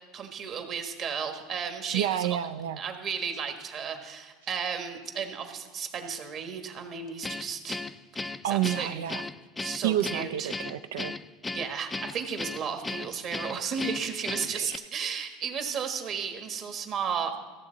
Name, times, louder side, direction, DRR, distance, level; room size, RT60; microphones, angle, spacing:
voice 1, 0.1-2.3 2.8-7.8 8.1-9.0 9.6-10.5 11.5-17.4, right 6 dB, 45° right, 5 dB, 1.4 m, -34 dB
voice 2, 1.9-2.8 8.4-9.2 9.8-11.2 14.5-14.8, right 11 dB, 85° right, 11 dB, 0.4 m, -29 dB
Guitar, 7.2-14.8, left 3 dB, 15° left, 0.3 m, -36 dB
15.0 x 7.3 x 3.9 m, 1.4 s
supercardioid pair, 105°, 0 cm